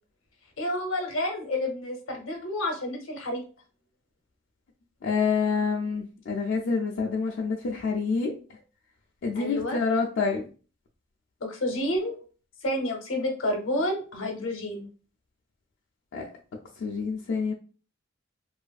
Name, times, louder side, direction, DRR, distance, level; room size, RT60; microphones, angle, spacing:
voice 1, 0.6-3.4 9.4-9.8 11.4-12.2 12.6-14.9, left 1 dB, 80° left, 3 dB, 0.7 m, -29 dB
voice 2, 5.0-8.3 9.2-10.5 16.1-16.3 16.8-17.5, left 5 dB, 65° left, -2 dB, 0.4 m, -27 dB
2.6 x 2.4 x 2.3 m, 0.38 s
head